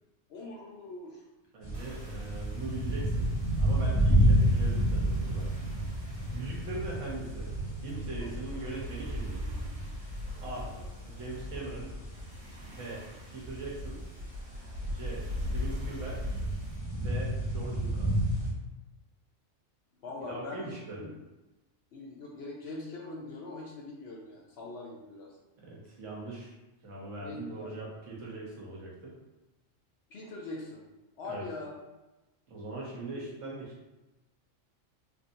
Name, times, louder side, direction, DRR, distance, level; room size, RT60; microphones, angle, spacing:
voice 1, 0.3-1.2 8.2-8.3 10.4-10.9 20.0-21.1 21.9-25.4 27.2-27.9 30.1-30.8 31.2-31.8 33.2-33.3, left 2 dB, 65° left, -1 dB, 0.7 m, -42 dB
voice 2, 1.5-3.3 3.6-5.5 6.3-7.5 7.8-9.4 10.4-10.7 11.0-11.9 12.7-14.0 14.9-16.2 16.9-18.1 20.2-21.0 25.6-26.5 26.8-29.1 31.2-31.5 32.5-33.7, right 2 dB, 75° right, -4 dB, 1.2 m, -41 dB
sound 1, 1.6-18.5, right 1 dB, 25° left, 1.3 m, -30 dB
sound 2, 1.7-16.8, left 1 dB, 55° right, 1.3 m, -41 dB
3.4 x 2.6 x 2.6 m, 1.1 s
omnidirectional pair, 1.3 m